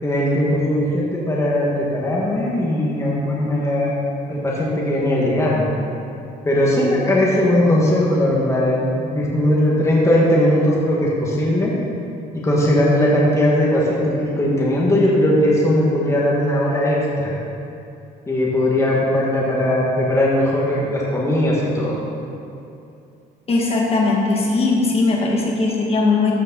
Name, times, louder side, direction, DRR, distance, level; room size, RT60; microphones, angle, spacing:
voice 1, 0.0-3.9 4.3-5.7 6.4-11.8 12.3-17.0 17.2-17.4 18.3-22.0, left 1 dB, 15° left, -5 dB, 1.6 m, -19 dB
voice 2, 23.5-26.3, left 3 dB, 35° left, -2 dB, 1.8 m, -19 dB
14.0 x 5.4 x 4.0 m, 2.7 s
cardioid pair, 110°, 17 cm